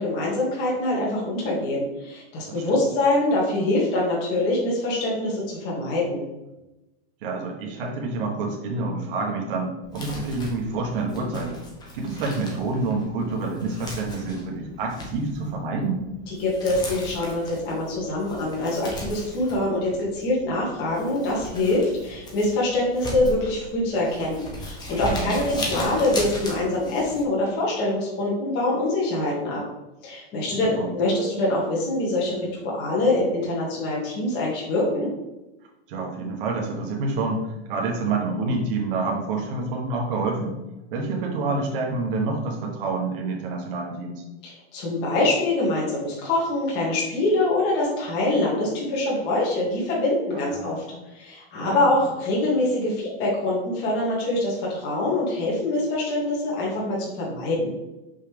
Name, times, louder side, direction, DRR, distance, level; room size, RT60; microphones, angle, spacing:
voice 1, 0.0-6.3 16.3-29.6 30.0-35.1 44.4-50.8 51.1-57.7, left 2 dB, 35° left, -5 dB, 2.1 m, -24 dB
voice 2, 7.2-11.6 11.9-16.0 25.1-25.7 30.8-31.1 35.9-40.5 40.9-44.2 50.3-50.9 51.6-51.9, right 3 dB, 60° right, -1 dB, 1.5 m, -28 dB
Crumpling crinkling, 9.8-27.2, left 1 dB, 15° left, 1.0 m, -37 dB
5.7 x 5.3 x 3.5 m, 0.98 s
supercardioid pair, 165°, 31 cm